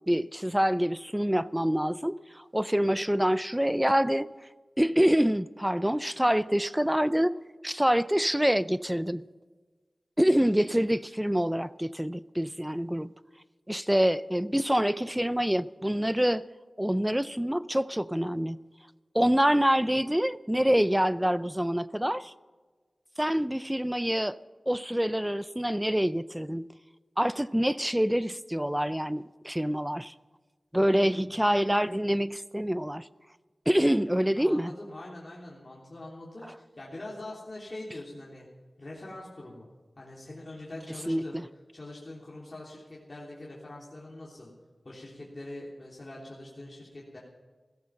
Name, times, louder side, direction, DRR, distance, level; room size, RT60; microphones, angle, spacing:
voice 1, 0.1-4.3 4.8-7.3 7.6-9.2 10.2-13.1 13.7-16.4 16.8-18.6 19.1-22.3 23.2-24.4 24.7-26.7 27.2-30.1 30.7-33.1 33.7-34.7 41.1-41.4, equal, 5° right, 0.5 m, -26 dB
voice 2, 31.0-31.3 34.3-38.5 38.8-39.7 40.0-41.4 41.7-44.5 44.8-47.2, left 1 dB, 40° left, 3.3 m, -43 dB
16.0 x 14.0 x 5.8 m
wide cardioid pair, 70°, 0 cm